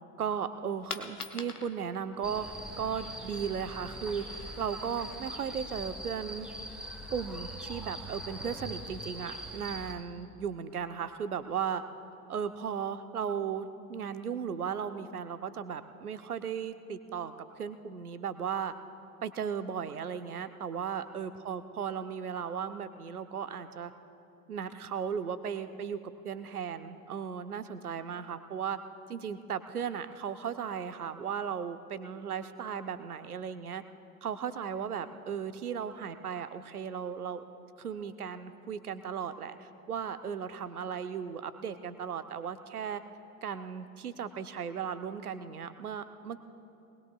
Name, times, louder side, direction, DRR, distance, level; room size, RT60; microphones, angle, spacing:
voice 1, 0.2-2.5 2.8-6.5 7.1-11.8 12.3-18.7 19.2-23.9 24.5-26.0 26.2-28.8 29.1-33.8 34.2-37.4 37.8-43.0 43.4-46.4, right 7 dB, 85° right, 11 dB, 0.8 m, -36 dB
Coin (dropping), 0.6-6.6, left 5 dB, 85° left, 1.0 m, -48 dB
sound 1, 2.2-9.9, right 1 dB, ahead, 2.4 m, -42 dB
22.5 x 19.5 x 2.3 m, 2.9 s
figure-of-eight pair, 80°, 43 cm